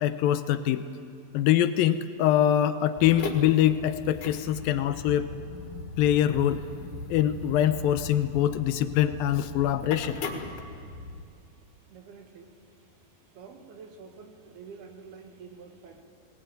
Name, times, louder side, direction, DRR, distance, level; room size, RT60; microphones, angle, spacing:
voice 1, 0.0-0.8 1.3-5.3 6.0-6.6 7.1-10.2, left 11 dB, 80° left, 11 dB, 2.3 m, -24 dB
sound 1, 3.0-11.2, left 3 dB, 60° left, 2.9 m, -39 dB
voice 2, 11.9-12.5 13.4-16.0, right 5 dB, 85° right, 4 dB, 3.7 m, -47 dB
20.0 x 19.0 x 9.1 m, 2.4 s
omnidirectional pair, 4.4 m